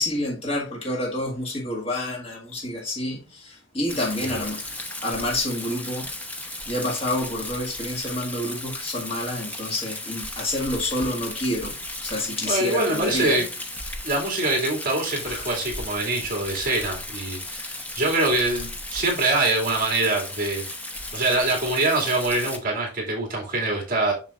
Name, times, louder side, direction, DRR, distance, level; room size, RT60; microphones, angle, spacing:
voice 1, 0.0-4.6 5.0-6.1 6.7-11.8 12.0-13.4 15.2-15.5, left 1 dB, 30° left, 1.8 m, -28 dB
Rain, 3.9-22.6, left 1 dB, 10° left, 0.8 m, -35 dB
voice 2, 12.5-13.5 14.0-20.6 21.1-24.1, right 2 dB, 45° right, 2.4 m, -24 dB
7.3 x 6.4 x 2.4 m
head